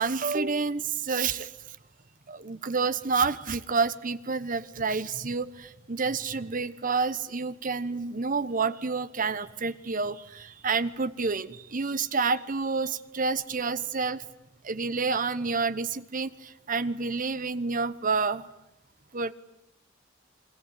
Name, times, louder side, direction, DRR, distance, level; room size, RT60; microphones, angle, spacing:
voice 1, 0.0-1.5 2.3-14.2 14.6-18.5 19.1-19.3, right 4 dB, 45° right, 15 dB, 1.1 m, -29 dB
28.0 x 22.0 x 9.3 m, 0.83 s
head